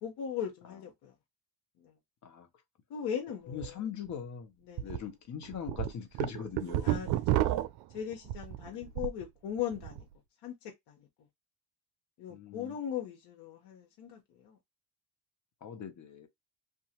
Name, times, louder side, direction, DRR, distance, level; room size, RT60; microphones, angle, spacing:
voice 1, 0.0-1.1 1.8-2.0 2.9-3.8 4.6-4.9 6.8-7.4 7.9-10.1 10.4-11.1 12.2-14.6, left 9 dB, 70° left, 1.0 m, -39 dB
voice 2, 3.5-4.5 4.8-7.0 8.7-8.8 12.3-12.8 15.6-16.3, left 7 dB, 40° left, 0.9 m, -41 dB
sound 1, 3.5-3.7 4.1-4.2 4.8-5.0 5.4-9.2 9.6-10.0, right 14 dB, 60° right, 0.5 m, -31 dB
2.8 x 2.5 x 2.8 m
cardioid pair, 100°, 42 cm